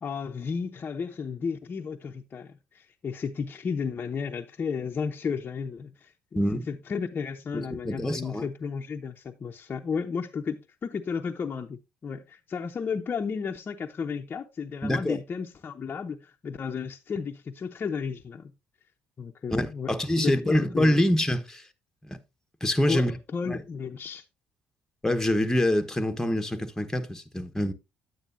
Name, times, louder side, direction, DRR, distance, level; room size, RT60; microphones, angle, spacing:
voice 1, 0.0-18.5 19.2-21.0 22.9-24.2, left 6 dB, 40° left, 0.7 m, -33 dB
voice 2, 6.3-6.7 7.5-8.4 14.8-15.2 19.5-21.7 22.1-22.2 22.6-23.1 23.5-23.6 25.0-27.7, left 1 dB, 10° left, 1.2 m, -25 dB
9.4 x 9.0 x 2.6 m
hypercardioid pair, 60°, 5 cm